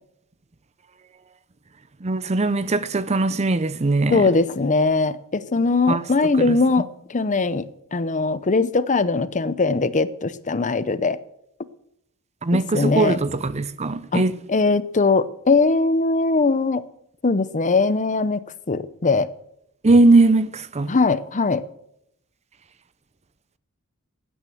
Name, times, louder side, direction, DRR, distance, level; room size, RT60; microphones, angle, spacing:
voice 1, 2.0-4.2 5.9-6.0 6.4-6.6 12.4-14.4 19.8-20.9, right 2 dB, 30° right, 0.6 m, -19 dB
voice 2, 4.1-7.6 7.9-11.2 12.5-13.2 14.1-14.2 14.5-16.8 17.2-18.4 18.7-19.3 20.9-21.6, left 3 dB, 35° left, 0.7 m, -20 dB
15.5 x 9.3 x 7.8 m
head